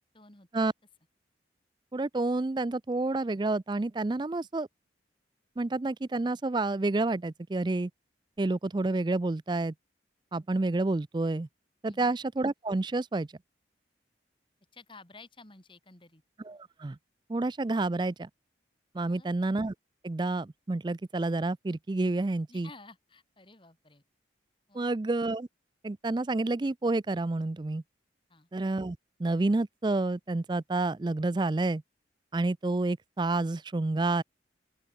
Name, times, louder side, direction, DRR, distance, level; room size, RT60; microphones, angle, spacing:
voice 1, 0.1-0.5 11.9-12.1 14.7-16.2 19.0-19.3 22.5-24.0 24.7-25.0 28.3-28.5, left 3 dB, 25° left, 3.1 m, -53 dB
voice 2, 1.9-4.7 5.6-7.9 8.4-9.7 10.3-11.5 11.8-13.3 16.5-17.0 17.3-18.3 18.9-19.7 20.0-22.7 24.7-25.5 25.8-27.8 28.5-31.8 32.3-34.2, right 2 dB, 25° right, 0.4 m, -29 dB
open air
head